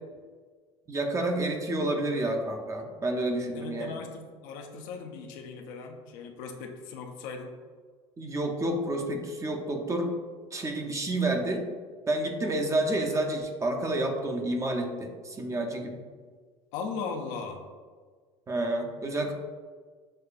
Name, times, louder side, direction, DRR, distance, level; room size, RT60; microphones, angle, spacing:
voice 1, 0.9-4.0 8.2-10.1 10.5-11.6 12.1-16.0 18.5-19.3, right 1 dB, 20° right, 3 dB, 0.5 m, -29 dB
voice 2, 3.5-7.5 16.7-17.6, left 5 dB, 70° left, 3 dB, 0.6 m, -38 dB
6.4 x 2.2 x 2.4 m, 1.6 s
supercardioid pair, 95°, 14 cm